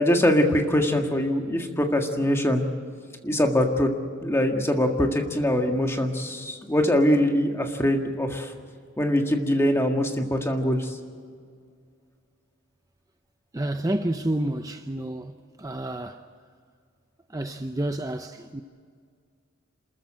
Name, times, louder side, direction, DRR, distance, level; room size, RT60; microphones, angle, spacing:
voice 1, 0.0-2.6 3.2-3.9 4.2-8.5 9.0-11.0, left 1 dB, 10° left, 1.8 m, -23 dB
voice 2, 13.5-15.3 15.6-16.2 17.3-18.6, right 1 dB, 15° right, 0.6 m, -29 dB
27.0 x 14.0 x 8.8 m
head